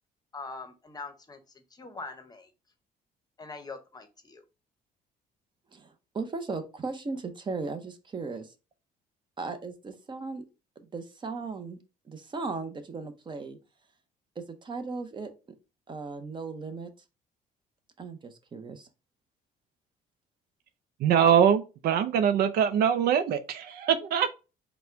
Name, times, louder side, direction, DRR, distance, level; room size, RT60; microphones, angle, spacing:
voice 1, 0.3-2.5 3.4-4.4, left 3 dB, 25° left, 0.8 m, -43 dB
voice 2, 5.7-8.5 9.4-10.4 10.8-11.8 12.1-13.6 14.4-15.3 15.9-16.9 18.0-18.9, right 4 dB, 30° right, 0.7 m, -37 dB
voice 3, 21.0-24.4, right 8 dB, 65° right, 0.5 m, -23 dB
4.1 x 2.2 x 4.4 m
cardioid pair, 110°, 17 cm